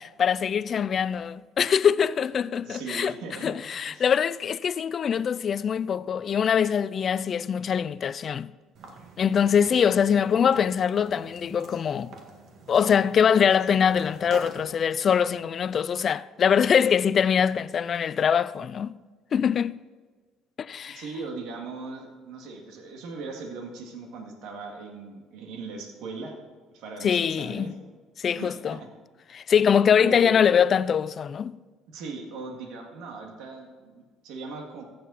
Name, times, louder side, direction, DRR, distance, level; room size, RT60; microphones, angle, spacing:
voice 1, 0.2-3.1 3.4-8.5 9.2-12.1 12.7-18.9 19.3-19.8 20.6-21.0 27.0-27.7 28.2-28.8 29.3-31.6, left 7 dB, 45° left, 0.4 m, -23 dB
voice 2, 2.6-3.6 3.9-4.0 20.9-26.4 26.7-27.8 28.3-28.9 30.0-30.5 31.9-34.8, right 3 dB, 80° right, 2.0 m, -39 dB
sound 1, 8.7-14.7, right 3 dB, 60° right, 1.8 m, -46 dB
14.5 x 7.8 x 4.1 m
cardioid pair, 95°, 0 cm